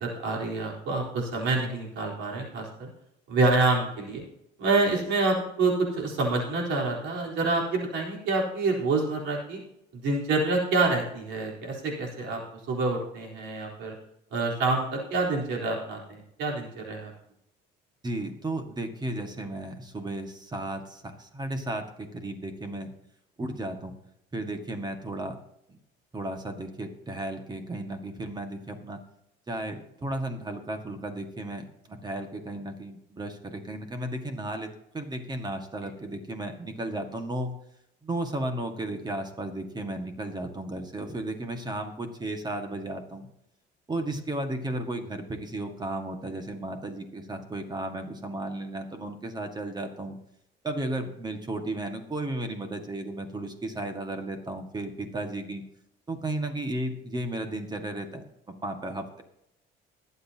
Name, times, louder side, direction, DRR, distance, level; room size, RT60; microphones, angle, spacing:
voice 1, 0.0-2.9 3.3-4.2 4.6-9.6 9.9-13.9 14.3-17.1, right 3 dB, 75° right, -2 dB, 4.0 m, -27 dB
voice 2, 18.0-22.9 23.4-23.9 24.3-25.4 25.7-25.8 26.1-29.0 29.5-37.5 38.0-43.3 43.9-50.2 50.6-55.6 56.1-58.2 58.6-59.2, right 1 dB, 20° right, 6 dB, 1.7 m, -34 dB
21.5 x 8.1 x 2.9 m, 0.79 s
cardioid pair, 115°, 19 cm